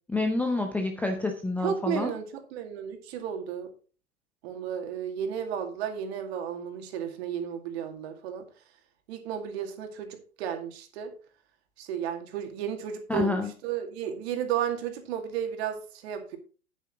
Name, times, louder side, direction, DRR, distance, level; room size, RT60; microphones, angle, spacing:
voice 1, 0.1-2.1 13.1-13.5, left 2 dB, 5° left, 4 dB, 0.6 m, -28 dB
voice 2, 1.6-3.7 4.4-8.4 9.1-11.1 11.8-16.4, right 8 dB, 45° right, 5 dB, 2.3 m, -33 dB
9.1 x 9.0 x 3.7 m, 0.37 s
hypercardioid pair, 115°, 42 cm